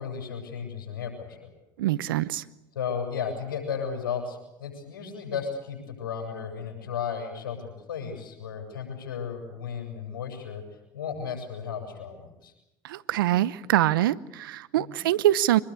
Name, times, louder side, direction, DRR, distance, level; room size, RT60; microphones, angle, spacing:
voice 1, 0.0-1.5 2.7-10.6 10.9-12.5 14.8-15.0, left 7 dB, 85° left, 7.8 m, -34 dB
voice 2, 1.8-2.4 12.8-15.6, right 14 dB, 85° right, 0.8 m, -24 dB
25.0 x 21.5 x 8.3 m
hypercardioid pair, 70°, 11 cm